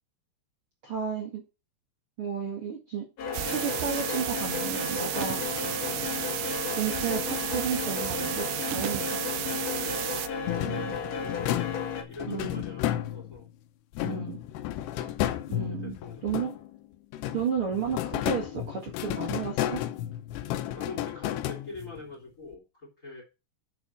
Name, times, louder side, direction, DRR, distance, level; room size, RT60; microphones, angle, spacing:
voice 1, 0.8-1.4 2.2-3.1 3.5-5.4 6.7-9.2 10.6-11.0 12.3-12.6 14.0-14.4 15.5-16.0 16.2-16.5 17.3-19.8, right 7 dB, 45° right, -1 dB, 2.1 m, -32 dB
sound 1, 3.2-12.0, left 6 dB, 50° left, 2.3 m, -34 dB
sound 2, 3.3-10.3, right 15 dB, 85° right, 2.7 m, -33 dB
voice 2, 9.4-13.5 15.5-16.6 20.4-23.2, left 3 dB, 20° left, 0 dB, 3.4 m, -45 dB
sound 3, 10.5-13.5 13.9-16.8 17.1-22.1, left 12 dB, 90° left, 2.9 m, -32 dB
7.3 x 7.0 x 6.3 m, 0.29 s
omnidirectional pair, 4.6 m